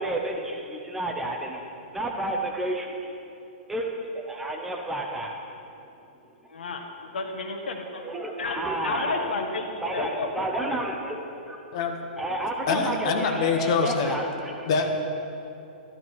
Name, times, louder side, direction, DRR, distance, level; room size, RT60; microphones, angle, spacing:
voice 1, 0.0-1.6 1.9-3.1 3.7-5.3 8.0-9.3 9.8-11.2 11.5-11.6 12.2-14.7, right 1 dB, 5° right, 1 dB, 0.6 m, -31 dB
voice 2, 6.5-6.9 7.1-8.0 8.4-9.7 9.9-10.3 10.7-10.8, left 3 dB, 85° left, 4 dB, 1.7 m, -31 dB
voice 3, 12.7-14.1 14.7-15.0, left 5 dB, 30° left, 4 dB, 0.9 m, -24 dB
12.5 x 12.0 x 4.6 m, 2.8 s
hypercardioid pair, 175°, 5 cm